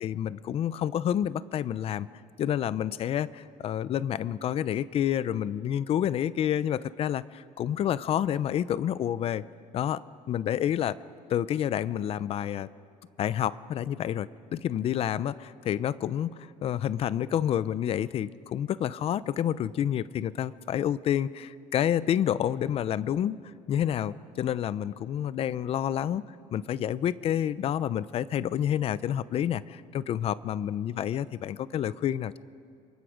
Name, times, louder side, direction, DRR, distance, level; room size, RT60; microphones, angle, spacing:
voice 1, 0.0-2.1 2.4-9.4 9.7-10.0 10.3-11.0 11.3-12.7 13.2-23.4 23.7-26.2 26.5-32.4, left 10 dB, 45° left, 17 dB, 0.5 m, -29 dB
27.5 x 23.5 x 5.1 m, 2.3 s
cardioid pair, 150°, 14 cm